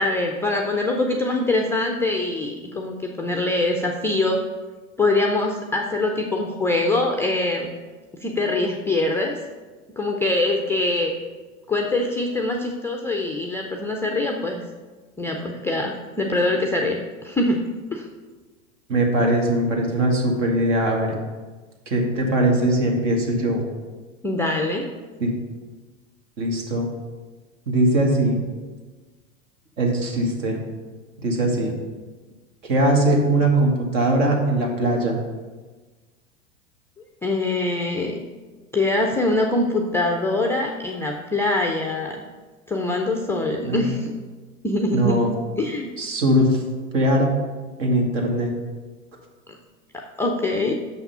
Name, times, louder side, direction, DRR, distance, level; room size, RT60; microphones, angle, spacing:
voice 1, 0.0-4.4 5.0-7.7 8.2-9.4 10.0-11.1 11.7-14.6 15.2-17.6 17.9-18.0 24.2-24.9 37.2-38.3 38.7-42.2 42.7-44.1 44.6-45.2 45.6-45.9 50.2-50.7, left 2 dB, 5° left, 1 dB, 0.3 m, -23 dB
voice 2, 18.9-21.2 21.9-23.7 25.2-25.3 26.4-26.9 27.7-28.4 29.8-30.6 31.2-31.7 32.6-35.2 43.6-43.8 44.9-45.3 46.0-46.6 46.9-47.3 47.8-48.5, right 1 dB, 65° right, 1 dB, 2.0 m, -20 dB
6.6 x 5.8 x 5.4 m, 1.3 s
hypercardioid pair, 90°, 41 cm